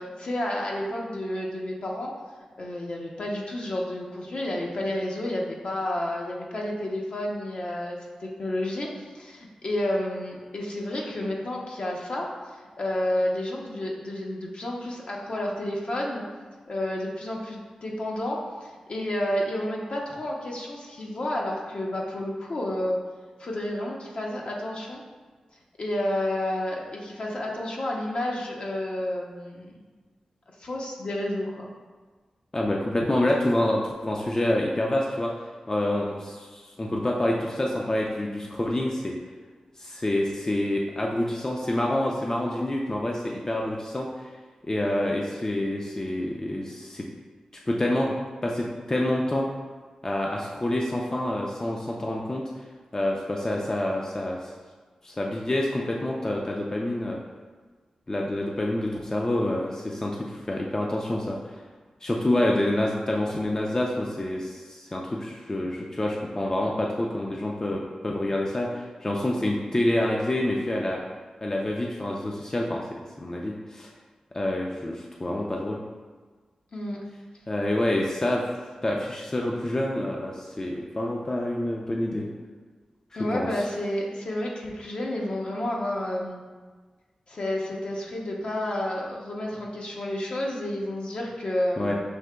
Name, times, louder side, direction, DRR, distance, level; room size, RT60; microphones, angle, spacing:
voice 1, 0.0-2.1 2.6-16.2 16.7-23.0 23.4-25.0 25.8-29.8 30.6-31.6 76.7-77.0 83.1-86.4 87.3-91.9, left 1 dB, 60° left, -2 dB, 0.7 m, -30 dB
voice 2, 32.5-35.3 35.7-39.1 39.8-44.3 44.6-47.1 47.7-48.1 48.4-49.5 50.0-52.6 52.9-54.5 55.0-57.2 58.1-61.6 62.0-71.0 71.4-73.9 74.3-75.8 77.5-78.5 78.8-82.3 83.3-83.6 91.8-91.9, left 1 dB, 30° left, -1 dB, 0.4 m, -27 dB
6.2 x 2.8 x 2.2 m, 1.4 s
cardioid pair, 55°, 2 cm